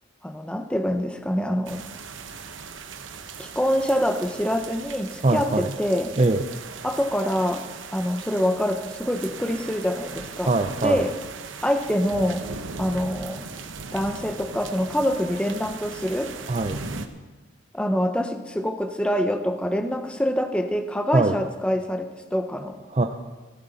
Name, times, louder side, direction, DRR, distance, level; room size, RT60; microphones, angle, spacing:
voice 1, 0.2-1.8 3.4-6.1 6.8-7.6 7.9-10.5 10.8-11.2 11.6-12.5 12.8-13.5 13.9-16.3 17.7-22.8, equal, 5° left, 7 dB, 0.7 m, -25 dB
sound 1, 1.7-17.1, right 4 dB, 90° right, 0.9 m, -38 dB
voice 2, 5.2-5.7 6.2-6.4 10.5-11.0 16.5-16.8 21.1-21.4 22.9-23.1, right 2 dB, 35° right, 5 dB, 0.5 m, -22 dB
15.5 x 13.0 x 4.1 m, 1.2 s
head